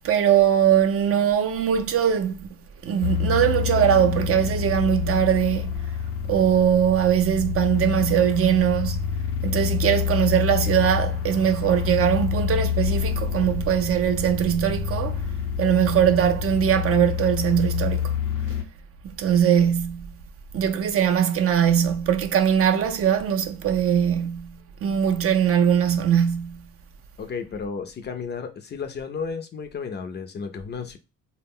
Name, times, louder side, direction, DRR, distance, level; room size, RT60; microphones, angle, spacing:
voice 1, 0.0-2.5 2.8-5.7 6.3-9.0 9.4-15.2 15.6-18.1 19.2-20.1 20.5-24.5 24.8-26.6, right 9 dB, 45° right, 0.4 m, -21 dB
sound 1, 3.0-18.6, left 8 dB, 90° left, 0.6 m, -27 dB
voice 2, 27.2-31.0, left 5 dB, 35° left, 0.4 m, -33 dB
2.1 x 2.1 x 3.6 m
cardioid pair, 105°, 32 cm